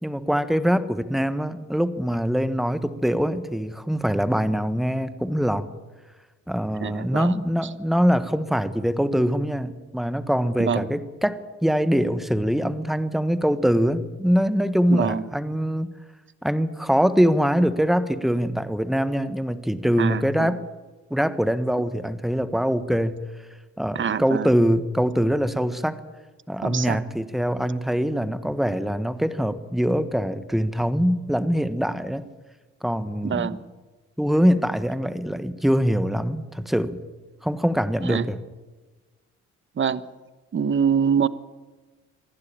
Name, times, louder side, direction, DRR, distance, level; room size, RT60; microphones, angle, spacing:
voice 1, 0.0-5.7 6.5-15.9 16.4-20.6 21.1-23.2 23.8-26.0 26.5-32.3 32.8-33.6 34.2-37.0 37.4-38.4, equal, ahead, 12 dB, 1.4 m, -23 dB
voice 2, 6.8-7.3 10.6-10.9 14.9-15.2 20.0-20.6 23.9-24.5 26.6-27.0 33.2-33.6 38.0-38.2 39.8-40.0 40.5-41.3, right 7 dB, 40° right, 15 dB, 1.1 m, -24 dB
26.0 x 11.5 x 8.9 m, 1.2 s
cardioid pair, 90°, 30 cm